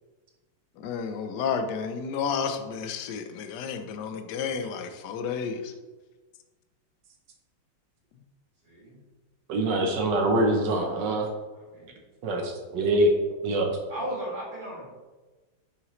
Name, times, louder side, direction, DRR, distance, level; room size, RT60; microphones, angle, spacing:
voice 1, 0.8-5.7, left 6 dB, 70° left, 8 dB, 1.0 m, -31 dB
voice 2, 9.5-11.3 12.2-13.1 13.4-13.7, right 1 dB, 65° right, 2 dB, 1.3 m, -24 dB
voice 3, 13.9-14.8, right 1 dB, 45° right, -5 dB, 2.7 m, -35 dB
6.5 x 6.0 x 3.1 m, 1.2 s
omnidirectional pair, 2.4 m